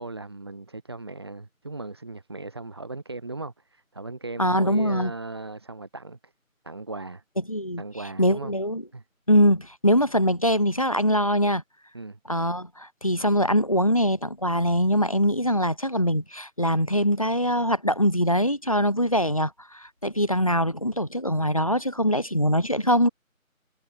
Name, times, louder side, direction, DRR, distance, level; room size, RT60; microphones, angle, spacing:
voice 1, 0.0-6.3 6.6-7.2 7.8-8.5 8.9-9.0 11.9-12.2, right 3 dB, 20° right, 4.8 m, -37 dB
voice 2, 4.4-5.1 7.5-7.8 8.2-8.8 9.3-11.6 12.3-23.1, equal, 25° left, 2.0 m, -23 dB
figure-of-eight pair, 175°, 42 cm